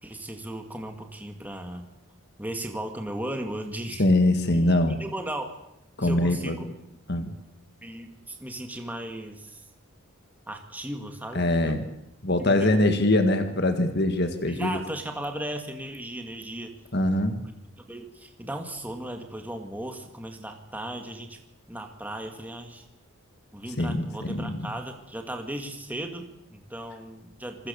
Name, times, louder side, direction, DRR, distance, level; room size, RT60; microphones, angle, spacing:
voice 1, 0.0-1.9 2.4-4.0 4.5-5.5 6.0-6.8 7.8-9.7 10.5-11.8 12.4-12.8 14.5-16.7 17.9-21.4 21.7-22.8 23.5-27.7, right 1 dB, 10° right, 4 dB, 2.1 m, -36 dB
voice 2, 4.0-5.0 6.0-6.6 7.1-7.3 11.3-11.9 12.2-14.8 16.9-17.4 23.8-24.7, left 1 dB, 50° left, 7 dB, 1.9 m, -23 dB
27.5 x 21.5 x 7.1 m, 0.86 s
head